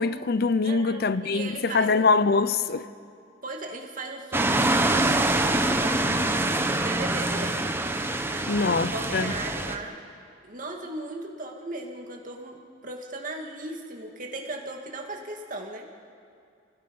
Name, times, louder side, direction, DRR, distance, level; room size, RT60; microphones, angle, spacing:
voice 1, 0.0-2.8 8.5-9.4, left 4 dB, 60° left, 0.6 m, -24 dB
voice 2, 0.6-2.1 3.4-7.6 8.1-9.9 10.4-15.9, right 2 dB, 50° right, 2.3 m, -37 dB
sound 1, 4.3-9.8, right 2 dB, 15° right, 1.0 m, -25 dB
29.5 x 18.5 x 5.5 m
head